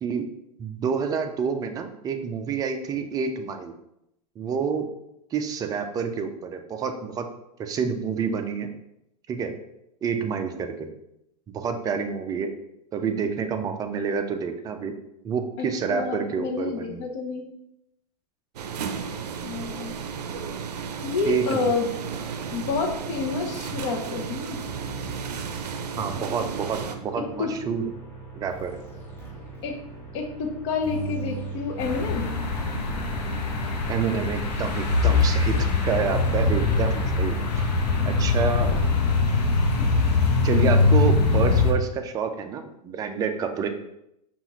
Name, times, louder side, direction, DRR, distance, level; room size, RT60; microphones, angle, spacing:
voice 1, 0.6-3.7 4.4-4.9 5.3-7.3 7.6-8.7 9.3-9.5 10.0-10.7 11.5-12.5 12.9-14.9 15.2-17.1 21.3-21.7 26.0-27.8 28.3-28.8 33.9-37.4 38.1-38.7 40.4-43.7, right 6 dB, 20° right, 6 dB, 0.4 m, -28 dB
voice 2, 15.6-17.5 19.4-19.9 21.0-21.9 22.5-24.6 26.2-26.5 27.4-27.5 29.6-29.8 30.1-32.3 36.3-36.5 39.8-39.9, left 4 dB, 45° left, 3 dB, 0.8 m, -29 dB
sound 1, 18.6-27.0, right 6 dB, 80° right, 0.5 m, -34 dB
sound 2, 22.9-39.2, right 3 dB, 10° left, 1.1 m, -39 dB
sound 3, 31.8-41.7, left 3 dB, 85° left, 0.9 m, -22 dB
5.3 x 2.5 x 2.9 m, 0.81 s
hypercardioid pair, 120°, 20 cm